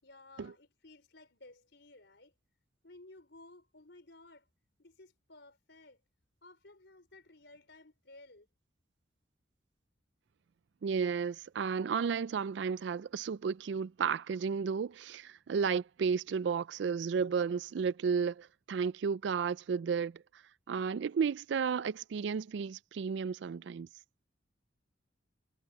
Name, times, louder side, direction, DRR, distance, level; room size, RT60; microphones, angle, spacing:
voice 1, 0.0-2.3 2.8-4.5 4.8-6.0 6.4-8.5, left 2 dB, 65° left, 4.6 m, -56 dB
voice 2, 10.8-20.2 20.7-23.9, right 6 dB, 70° right, 0.4 m, -33 dB
head